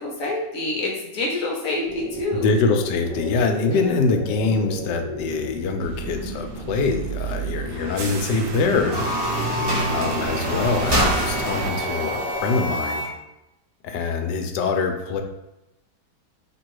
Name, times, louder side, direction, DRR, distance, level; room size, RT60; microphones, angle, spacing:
voice 1, 0.0-2.6 3.7-4.1 9.3-9.6 10.1-10.3, left 2 dB, 55° left, -1 dB, 1.1 m, -28 dB
sound 1, 1.8-12.7, equal, 35° left, 1.0 m, -33 dB
voice 2, 2.3-9.0 9.8-13.1 13.8-15.2, left 4 dB, 75° left, 5 dB, 1.2 m, -24 dB
sound 2, 5.8-11.7, right 4 dB, 70° right, 0.9 m, -30 dB
sound 3, 8.7-13.2, equal, 20° right, 0.8 m, -27 dB
3.0 x 3.0 x 4.6 m, 0.92 s
omnidirectional pair, 1.9 m